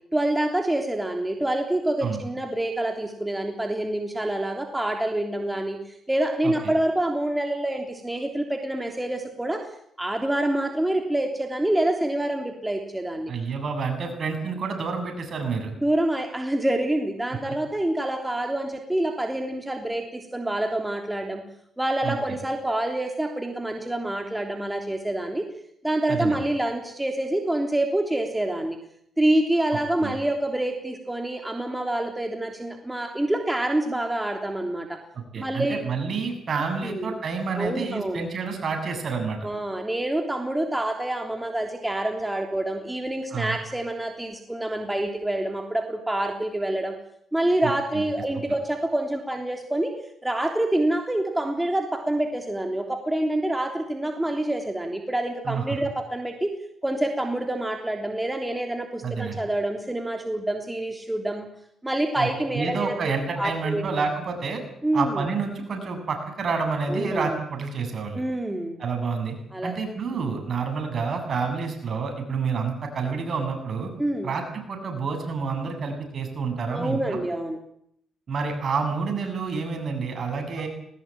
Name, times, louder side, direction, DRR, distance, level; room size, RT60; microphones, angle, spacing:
voice 1, 0.1-9.7 10.0-13.3 15.8-21.4 21.8-25.5 25.8-28.8 29.2-35.0 35.3-35.8 36.8-37.1 37.5-38.2 39.4-46.9 47.3-49.9 50.2-56.5 56.8-61.5 61.8-64.0 64.8-65.2 66.8-67.4 68.1-68.8 69.5-69.7 74.0-74.3 76.7-77.6, right 1 dB, 10° right, 3 dB, 3.3 m, -27 dB
voice 2, 13.3-15.7 22.0-22.1 26.1-26.4 30.0-30.1 35.3-39.5 43.3-43.6 47.6-47.7 55.4-55.8 59.0-59.4 62.2-62.3 62.5-64.6 64.9-68.2 68.8-69.4 69.6-73.9 74.2-77.2 78.3-80.7, right 5 dB, 50° right, 5 dB, 7.8 m, -28 dB
20.5 x 19.5 x 9.2 m, 0.69 s
cardioid pair, 85°, 0 cm